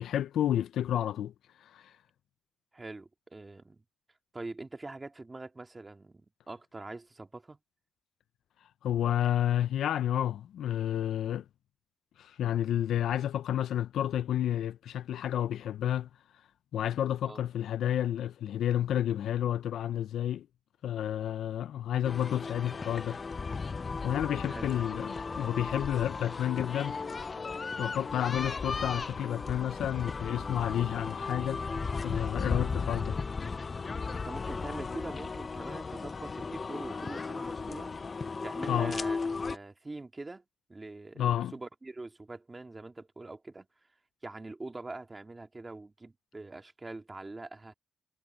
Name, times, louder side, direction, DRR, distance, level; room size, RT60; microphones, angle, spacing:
voice 1, 0.0-1.3 1.6-2.0 8.8-11.4 12.2-16.1 16.7-20.5 20.8-23.2 24.0-27.0 27.8-31.6 32.0-33.2 38.7-38.9 41.2-41.5, left 11 dB, 80° left, 0.5 m, -30 dB
voice 2, 2.7-3.8 4.3-7.6 17.3-17.4 24.5-24.7 32.4-32.7 34.1-38.0 38.4-40.4 40.7-43.7 44.2-47.7, right 2 dB, 15° right, 2.0 m, -44 dB
sound 1, 22.0-39.6, left 4 dB, 25° left, 0.4 m, -36 dB
wide cardioid pair, 155°, 0 cm